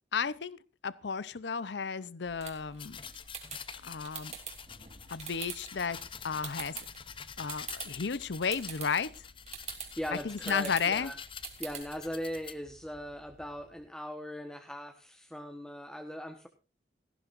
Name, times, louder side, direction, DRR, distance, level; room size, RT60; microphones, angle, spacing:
voice 1, 0.1-0.6 0.8-3.0 3.8-4.3 5.1-6.0 6.2-6.8 7.4-9.3 10.2-11.1, left 6 dB, 70° left, 19 dB, 0.7 m, -33 dB
sound 1, 2.2-12.0, right 7 dB, 40° right, 3.1 m, -46 dB
sound 2, 2.8-12.5, left 7 dB, 30° left, 0.7 m, -46 dB
sound 3, 4.8-13.9, equal, 85° right, 2.8 m, -62 dB
voice 2, 10.0-11.2 11.6-16.5, equal, 5° left, 5 dB, 1.2 m, -39 dB
17.5 x 15.0 x 2.5 m, 0.30 s
head